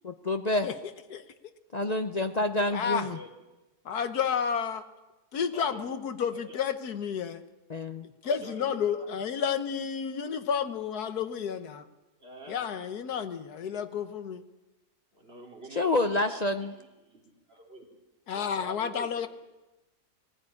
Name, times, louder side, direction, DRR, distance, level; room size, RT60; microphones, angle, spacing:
voice 1, 0.0-0.7 1.7-3.2 7.7-8.0 15.8-16.7, left 2 dB, 45° left, 8 dB, 0.5 m, -28 dB
voice 2, 2.7-3.1 3.8-4.9 5.3-7.4 8.2-11.8 12.5-14.4 18.3-19.3, left 7 dB, 75° left, 10 dB, 1.6 m, -31 dB
voice 3, 5.5-5.9 6.3-6.6 8.2-9.1 12.2-12.7 15.1-17.9 18.3-19.2, right 1 dB, 40° right, 1 dB, 3.3 m, -46 dB
19.0 x 15.5 x 9.7 m, 1.1 s
omnidirectional pair, 1.7 m